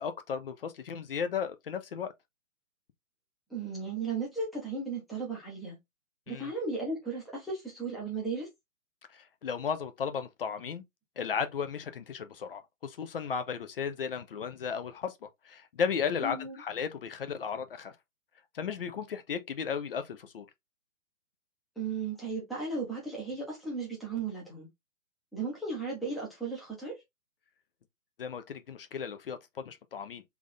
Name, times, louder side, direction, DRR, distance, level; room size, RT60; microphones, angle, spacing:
voice 1, 0.0-2.1 6.3-6.5 9.1-10.8 11.2-15.1 15.4-17.9 18.5-20.5 28.2-30.2, left 6 dB, 45° left, 0.5 m, -35 dB
voice 2, 3.5-5.8 6.3-8.5 16.2-16.6 21.8-24.7 25.3-27.0, right 4 dB, ahead, 0.7 m, -35 dB
3.4 x 2.6 x 3.8 m
hypercardioid pair, 140°, 42 cm